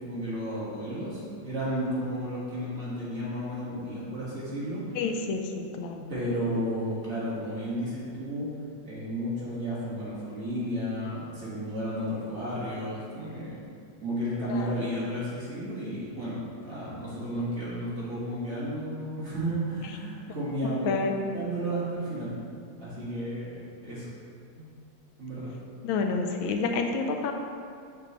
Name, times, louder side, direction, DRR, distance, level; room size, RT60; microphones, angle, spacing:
voice 1, 0.0-4.8 6.1-8.5 8.9-13.6 14.0-22.3 22.8-24.1 24.6-24.7 25.2-25.5, equal, 35° right, -9 dB, 1.8 m, -33 dB
voice 2, 4.9-6.1 14.5-14.7 20.8-21.2 25.8-27.3, left 4 dB, 85° left, 4 dB, 1.4 m, -29 dB
6.8 x 4.8 x 3.0 m, 2.4 s
omnidirectional pair, 2.1 m